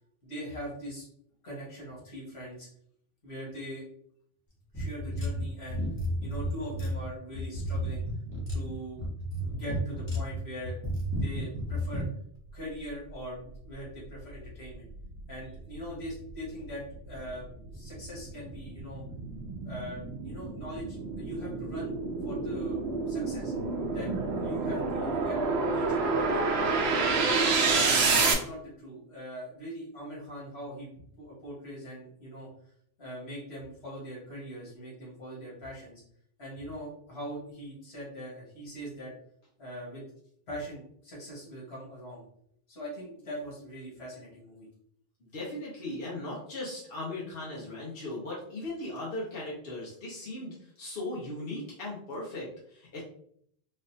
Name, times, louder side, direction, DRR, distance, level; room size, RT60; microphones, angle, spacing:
voice 1, 0.2-1.1 1.4-2.7 3.2-3.8 4.7-5.8 6.2-8.2 8.5-9.1 9.5-10.8 11.1-12.0 12.5-14.9 15.3-17.5 17.7-19.0 19.6-21.9 22.2-23.5 23.9-24.1 24.4-25.4 25.7-27.1 27.7-27.9 28.1-30.9 31.2-32.5 33.0-36.0 36.4-39.1 39.6-40.0 40.5-42.2 42.7-44.7, equal, 85° left, -5 dB, 1.7 m, -42 dB
sound 1, 4.7-12.1, equal, 15° left, 1.0 m, -32 dB
sound 2, 13.6-13.7 14.2-28.3, right 4 dB, 80° right, 0.9 m, -29 dB
voice 2, 45.3-53.0, left 2 dB, 65° left, -5 dB, 1.1 m, -38 dB
4.0 x 2.5 x 2.6 m, 0.67 s
omnidirectional pair, 1.1 m